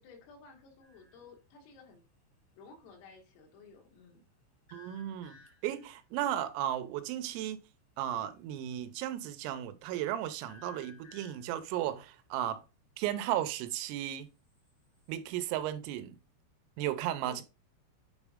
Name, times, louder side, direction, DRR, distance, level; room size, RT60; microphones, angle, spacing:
voice 1, 0.0-2.0 2.6-4.2 17.2-17.4, left 4 dB, 85° left, 4.3 m, -54 dB
sound 1, 0.8-1.3 4.7-5.9 10.5-11.6 14.3-15.3, left 4 dB, 45° left, 0.8 m, -58 dB
voice 2, 4.7-5.4 5.6-7.6 8.0-12.6 13.0-14.3 15.1-16.2 16.8-17.4, right 12 dB, 90° right, 3.4 m, -35 dB
9.4 x 3.6 x 3.6 m
omnidirectional pair, 5.8 m